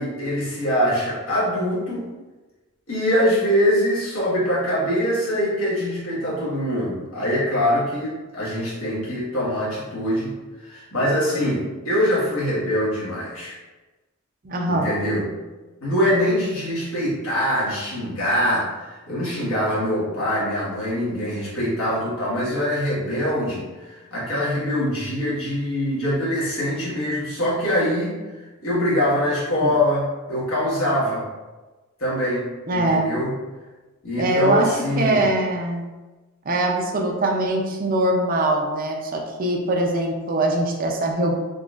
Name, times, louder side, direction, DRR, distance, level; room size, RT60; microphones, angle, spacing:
voice 1, 0.0-2.1 2.9-13.6 14.7-15.3 15.8-28.2 28.6-31.2 32.0-33.3 34.0-35.2, equal, 65° left, -7 dB, 1.4 m, -23 dB
voice 2, 14.4-15.0 29.6-29.7 32.7-33.1 34.2-35.9 36.4-41.4, right 1 dB, 40° right, 0 dB, 0.5 m, -22 dB
3.8 x 2.9 x 2.4 m, 1.2 s
head